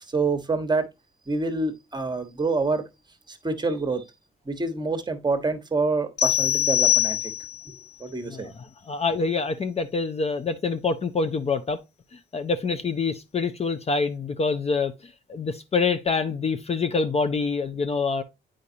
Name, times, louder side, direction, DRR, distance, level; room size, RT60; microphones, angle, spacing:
voice 1, 0.1-0.9 1.3-2.8 3.3-4.0 4.5-7.2 7.7-7.8 8.0-8.5, right 3 dB, 20° right, 1.1 m, -26 dB
sound 1, 6.2-7.7, left 12 dB, 60° left, 2.2 m, -23 dB
voice 2, 8.2-11.8 12.1-18.2, left 4 dB, 30° left, 0.6 m, -26 dB
8.2 x 5.0 x 2.7 m
cardioid pair, 90°, 20 cm